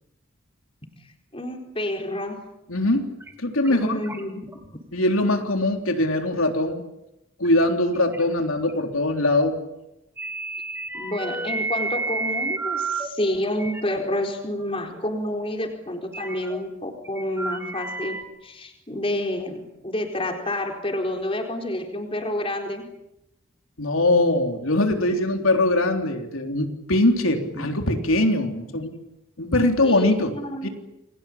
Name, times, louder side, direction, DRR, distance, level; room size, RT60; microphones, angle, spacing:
voice 1, 1.3-2.4 3.7-4.6 10.9-22.9 27.5-27.7 29.8-30.7, left 1 dB, 25° left, 3 dB, 4.3 m, -29 dB
voice 2, 2.7-3.1 3.4-4.0 4.9-6.8 7.4-9.6 23.8-28.9 29.4-30.3 30.6-30.7, left 2 dB, 80° left, 4 dB, 3.6 m, -22 dB
sound 1, 3.2-3.3 3.6-3.7 4.0-4.6 5.1-5.3 5.8-5.9 7.4-7.5 7.9-8.3 8.7-8.8 10.2-13.1 13.5-13.8 14.6-14.7 14.9-15.0 16.1-16.6 17.1-18.2, right 3 dB, 10° right, 2.6 m, -30 dB
29.5 x 22.5 x 8.7 m, 0.90 s
head